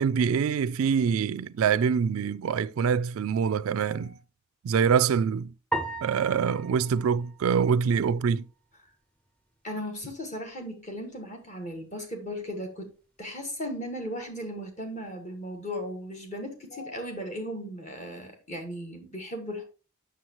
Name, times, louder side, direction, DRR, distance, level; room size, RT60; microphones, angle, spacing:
voice 1, 0.0-4.2 4.6-5.5 6.0-8.5, right 6 dB, 70° right, 0.3 m, -25 dB
voice 2, 3.8-4.1 9.6-12.9 13.2-19.6, equal, 35° left, 1.6 m, -37 dB
sound 1, 5.7-8.2, right 2 dB, 5° left, 0.6 m, -36 dB
7.8 x 6.3 x 3.0 m
head